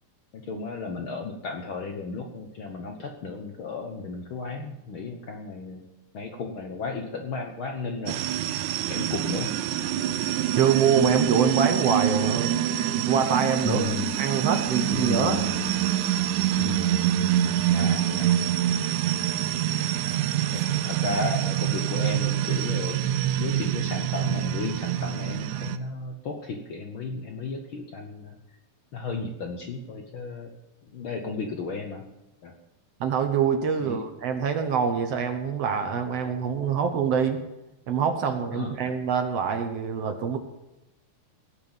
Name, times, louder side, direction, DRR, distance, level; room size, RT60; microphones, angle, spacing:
voice 1, 0.3-5.9 6.1-8.2 8.9-9.5 13.6-14.1 14.9-16.0 16.6-17.0 17.7-18.4 19.1-19.4 20.5-28.4 28.9-30.5 30.8-32.0 32.4-32.5 33.8-34.0 38.5-38.9, left 4 dB, 60° left, 3 dB, 1.4 m, -34 dB
sound 1, 8.1-25.8, right 11 dB, 80° right, 2.1 m, -26 dB
voice 2, 10.6-12.5 12.9-13.9 14.2-15.4 33.0-37.4 37.9-40.4, right 6 dB, 60° right, 7 dB, 1.9 m, -25 dB
17.5 x 5.9 x 8.8 m, 0.98 s
omnidirectional pair, 3.5 m